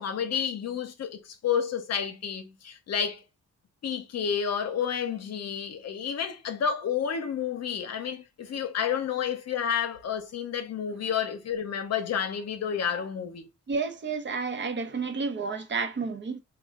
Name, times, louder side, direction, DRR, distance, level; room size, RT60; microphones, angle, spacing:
voice 1, 0.0-3.2 3.8-13.5, left 8 dB, 55° left, 0.8 m, -30 dB
voice 2, 13.7-16.4, right 4 dB, 40° right, 0.8 m, -31 dB
3.1 x 2.3 x 3.6 m
cardioid pair, 90°, 30 cm